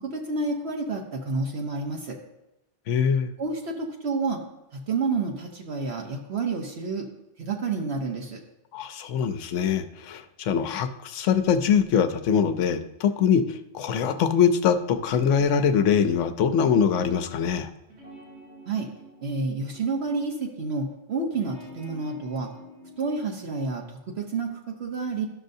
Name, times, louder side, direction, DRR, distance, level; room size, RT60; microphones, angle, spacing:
voice 1, 0.0-2.2 3.4-4.4 4.7-7.1 7.4-8.4 18.7-18.9 19.2-22.5 23.0-25.3, right 4 dB, 65° right, 1 dB, 1.1 m, -29 dB
voice 2, 2.9-3.3 8.7-17.7, left 7 dB, 85° left, 10 dB, 1.0 m, -23 dB
sound 1, 17.8-20.3 21.3-23.1, left 1 dB, 80° right, 3.5 m, -47 dB
12.5 x 6.4 x 2.6 m, 0.92 s
omnidirectional pair, 1.2 m